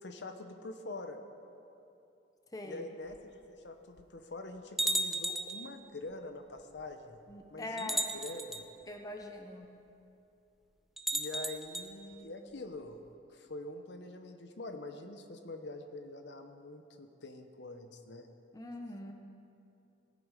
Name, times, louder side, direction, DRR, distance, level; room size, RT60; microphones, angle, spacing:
voice 1, 0.0-1.2 2.6-7.2 7.5-8.6 11.1-13.0 13.3-18.3, left 2 dB, 65° left, 6 dB, 0.8 m, -45 dB
voice 2, 2.5-2.9 7.3-8.1 8.9-9.7 18.5-19.1, left 2 dB, 20° left, 3 dB, 0.8 m, -42 dB
sound 1, 3.1-3.2 4.0-4.1 4.8-5.6 6.8-6.9 7.8-8.6 11.0-11.9, right 1 dB, ahead, 0.4 m, -34 dB
17.0 x 8.5 x 5.0 m, 2.7 s
head